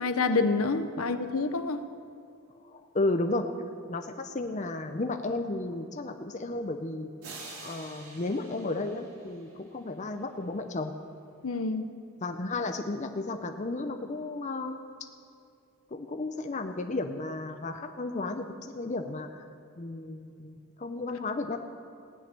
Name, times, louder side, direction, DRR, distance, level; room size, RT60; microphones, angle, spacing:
voice 1, 0.0-1.8 11.4-11.9, left 3 dB, 70° left, 9 dB, 0.8 m, -27 dB
voice 2, 2.7-3.5 3.9-7.1 7.6-10.9 12.2-14.8 15.9-19.3 19.8-21.6, left 2 dB, 30° left, 6 dB, 0.6 m, -33 dB
sound 1, 7.2-9.9, right 3 dB, 80° right, 2.5 m, -47 dB
16.5 x 6.5 x 9.4 m, 2.4 s
head